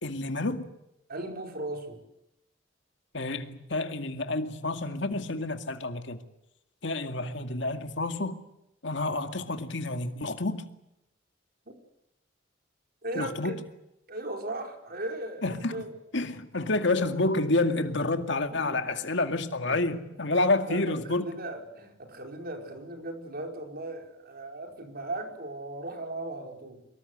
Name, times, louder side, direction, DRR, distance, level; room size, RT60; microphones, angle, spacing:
voice 1, 0.0-0.7 3.1-6.2 6.8-8.4 8.8-10.6 13.1-13.6 15.4-15.8 16.1-21.3, left 2 dB, 65° left, 2.2 m, -29 dB
voice 2, 1.1-2.0 11.7-11.8 13.0-13.6 14.1-15.9 18.5-18.8 20.7-26.8, right 2 dB, 50° right, 5.0 m, -37 dB
24.5 x 22.5 x 8.1 m
head